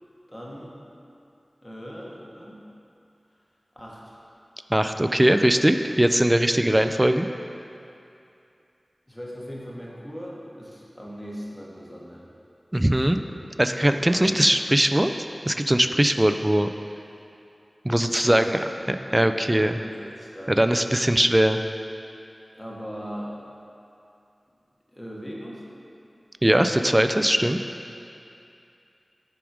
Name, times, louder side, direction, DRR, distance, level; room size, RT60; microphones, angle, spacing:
voice 1, 0.3-0.8 1.6-2.6 3.7-4.2 9.1-12.3 14.0-14.4 17.9-18.8 19.1-20.6 22.5-23.4 24.9-25.7, equal, 15° left, -4 dB, 1.4 m, -39 dB
voice 2, 4.7-7.3 12.7-13.2 13.6-15.1 15.5-16.7 17.8-18.6 18.9-19.8 20.5-21.6 26.4-27.6, right 1 dB, 20° right, 8 dB, 0.3 m, -20 dB
7.1 x 4.7 x 5.0 m, 2.7 s
wide cardioid pair, 55°, 0 cm